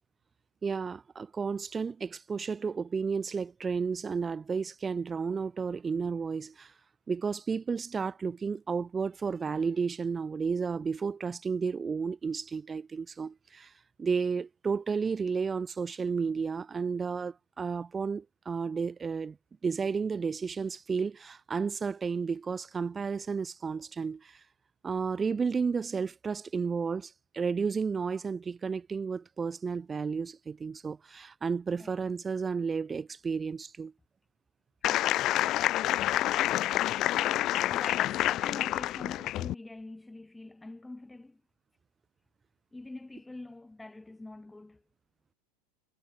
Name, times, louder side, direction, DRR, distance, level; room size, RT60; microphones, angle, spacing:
voice 1, 0.6-6.7 7.1-13.7 14.0-19.4 19.6-24.4 24.8-33.9, right 5 dB, 20° right, 2.9 m, -32 dB
sound 1, 34.8-39.5, left 14 dB, 40° left, 0.4 m, -28 dB
voice 2, 37.0-41.4 42.7-44.8, left 2 dB, 5° left, 1.6 m, -45 dB
figure-of-eight pair, 85°, 0 cm